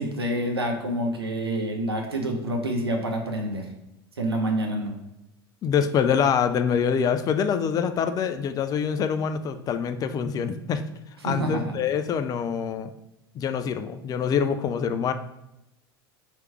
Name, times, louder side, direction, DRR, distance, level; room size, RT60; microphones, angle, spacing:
voice 1, 0.0-3.7 4.2-4.9 11.2-11.7, right 1 dB, 80° right, 2 dB, 0.8 m, -27 dB
voice 2, 5.6-10.8 11.2-12.9 13.3-15.1, left 7 dB, 30° left, 9 dB, 0.3 m, -25 dB
3.3 x 3.0 x 4.7 m, 0.86 s
figure-of-eight pair, 75°, 13 cm